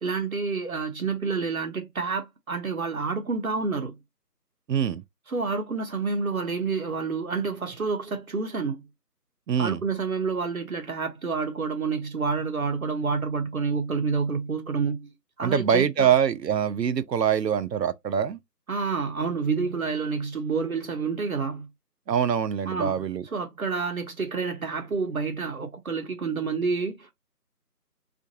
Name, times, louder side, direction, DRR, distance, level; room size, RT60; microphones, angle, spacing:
voice 1, 0.0-4.0 5.3-8.9 9.6-16.1 18.7-21.7 22.6-23.0 23.3-27.1, right 4 dB, 60° right, 0.8 m, -28 dB
voice 2, 4.7-5.0 9.5-9.8 15.4-18.4 22.1-23.3, right 8 dB, 85° right, 0.6 m, -24 dB
3.6 x 2.5 x 2.7 m
figure-of-eight pair, 175°, 49 cm